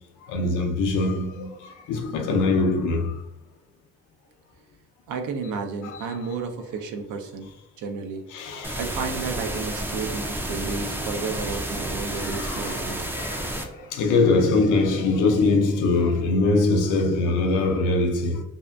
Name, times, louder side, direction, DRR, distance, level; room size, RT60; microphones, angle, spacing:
voice 1, 0.3-1.5 1.9-3.1 5.8-6.0 8.3-8.8 12.2-18.4, left 3 dB, 85° left, 0.6 m, -23 dB
voice 2, 5.1-7.5 7.8-8.3 8.8-13.1, right 5 dB, 75° right, 0.6 m, -32 dB
sound 1, 8.6-13.6, right 1 dB, 5° right, 0.3 m, -31 dB
2.7 x 2.4 x 2.2 m
cardioid pair, 90°, 30 cm